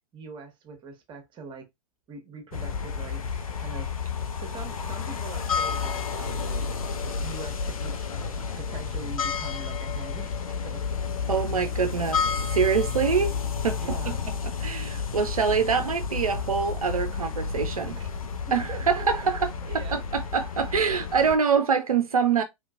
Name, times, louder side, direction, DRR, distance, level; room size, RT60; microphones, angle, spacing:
voice 1, 0.1-1.7 2.1-6.7 7.0-8.0 8.4-10.8 11.2-11.3 13.8-14.2 18.0-18.1 18.7-19.0 19.6-20.0 20.9-21.0, right 4 dB, 25° right, 1.2 m, -43 dB
sound 1, 2.5-21.4, left 5 dB, 70° left, 0.7 m, -31 dB
voice 2, 11.3-12.2 12.5-13.4 13.6-13.8 14.1-14.2 14.6-18.0 18.5-22.4, right 6 dB, 80° right, 0.5 m, -25 dB
3.7 x 2.9 x 2.4 m
figure-of-eight pair, 95°, 18 cm